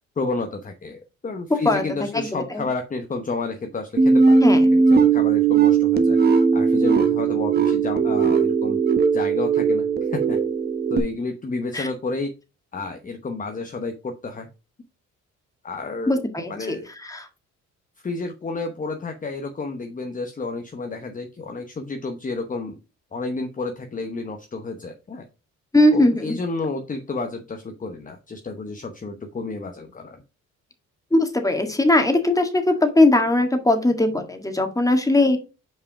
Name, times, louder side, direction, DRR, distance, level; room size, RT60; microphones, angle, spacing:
voice 1, 0.2-4.4 4.7-8.8 9.1-9.9 10.1-10.4 10.9-12.3 12.7-14.5 15.6-16.2 16.5-16.9 18.0-22.8 23.1-25.3 25.9-30.2, left 3 dB, 25° left, 5 dB, 0.9 m, -31 dB
voice 2, 2.1-2.6 4.4-4.6 11.7-11.9 16.1-16.8 17.1-17.3 25.7-26.4 31.1-35.4, left 1 dB, 10° left, 5 dB, 1.6 m, -19 dB
sound 1, 4.0-11.0, right 5 dB, 35° right, 1.1 m, -18 dB
5.7 x 4.8 x 4.7 m, 0.31 s
cardioid pair, 90°, 30 cm